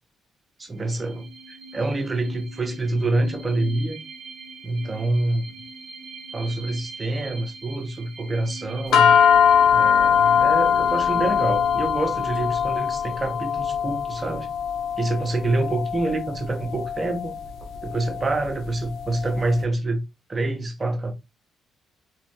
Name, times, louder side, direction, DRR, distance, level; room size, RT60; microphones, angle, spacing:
voice 1, 0.6-4.0 4.6-5.5 6.3-9.1 9.7-14.5 15.0-17.4 17.8-20.0 20.3-21.1, right 2 dB, 30° right, 1.2 m, -26 dB
sound 1, 0.7-14.1, right 2 dB, 50° right, 1.0 m, -42 dB
sound 2, 8.9-19.4, left 8 dB, 60° left, 0.8 m, -21 dB
4.1 x 3.7 x 3.1 m
figure-of-eight pair, 40°, 0 cm